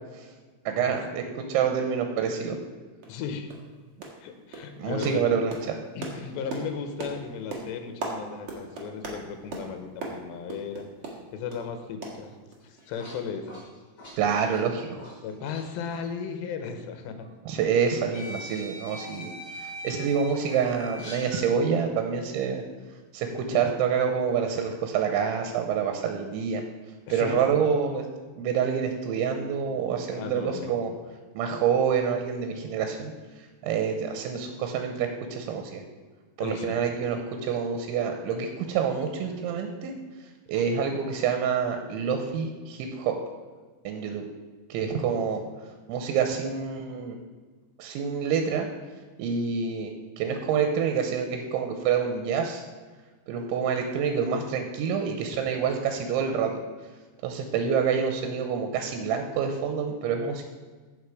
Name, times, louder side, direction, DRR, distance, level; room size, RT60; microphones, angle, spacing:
voice 1, 0.7-1.2 1.5-2.6 4.8-5.5 14.2-15.0 17.5-19.3 19.6-22.6 23.1-26.6 27.1-28.1 28.4-30.9 31.3-33.1 33.6-35.8 36.4-39.9 40.5-43.2 43.8-44.2 44.7-45.4 45.9-47.2 47.8-48.7 49.2-52.6 53.3-56.5 57.2-60.5, right 7 dB, 90° right, 5 dB, 3.2 m, -27 dB
sound 1, 2.5-2.6 3.0-3.2 3.5-3.7 4.0-4.3 4.5-11.7 12.0-12.8 13.0-13.2 13.5-13.6, right 3 dB, 65° right, 1.5 m, -39 dB
voice 2, 3.1-3.5 4.2-5.4 5.9-10.9 11.3-12.3 12.6-13.5 15.2-17.3 23.3-23.8 27.1-27.4 30.2-30.8 36.4-36.8 40.5-40.6 45.1-45.2, left 6 dB, 80° left, 7 dB, 2.9 m, -36 dB
sound 2, 12.6-15.6 15.9-16.1 17.2-17.3 18.1-21.5, equal, 30° left, 4.4 m, -42 dB
14.5 x 5.8 x 4.8 m, 1.4 s
omnidirectional pair, 5.3 m